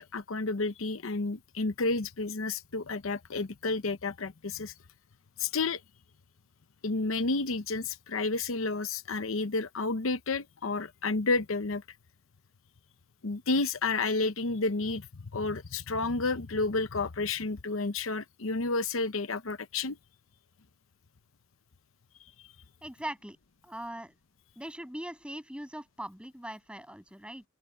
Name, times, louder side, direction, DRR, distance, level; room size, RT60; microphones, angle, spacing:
voice 1, 0.0-4.7 5.4-5.8 6.8-11.8 13.2-20.0, left 3 dB, 85° left, 0.8 m, -31 dB
voice 2, 22.8-23.4 23.6-24.1 24.6-27.4, right 1 dB, 5° right, 7.4 m, -41 dB
open air
head